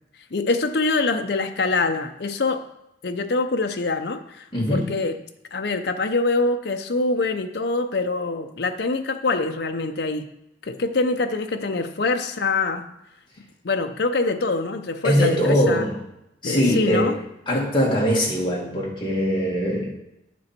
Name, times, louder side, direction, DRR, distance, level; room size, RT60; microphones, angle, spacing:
voice 1, 0.3-2.6 3.0-5.1 5.5-10.3 10.6-12.9 13.6-15.8 16.4-17.2, left 3 dB, 60° left, 6 dB, 0.6 m, -24 dB
voice 2, 4.5-5.0 15.0-16.0 16.4-19.9, equal, 25° left, -4 dB, 2.0 m, -22 dB
9.2 x 6.1 x 4.4 m, 0.85 s
head